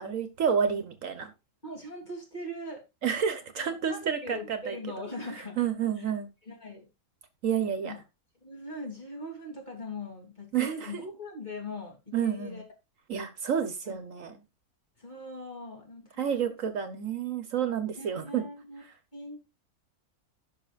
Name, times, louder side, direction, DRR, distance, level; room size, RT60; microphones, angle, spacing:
voice 1, 0.0-1.3 3.0-4.8 5.6-6.3 7.4-8.0 10.5-10.9 12.1-12.6 13.1-14.4 16.2-18.4, right 8 dB, 65° right, 1.3 m, -29 dB
voice 2, 1.6-2.8 3.6-6.1 6.4-6.9 7.8-8.0 8.4-12.6 13.9-14.4 15.0-16.4 18.0-18.8 19.1-19.5, left 1 dB, 30° left, 3.2 m, -41 dB
16.5 x 5.8 x 2.4 m
omnidirectional pair, 1.5 m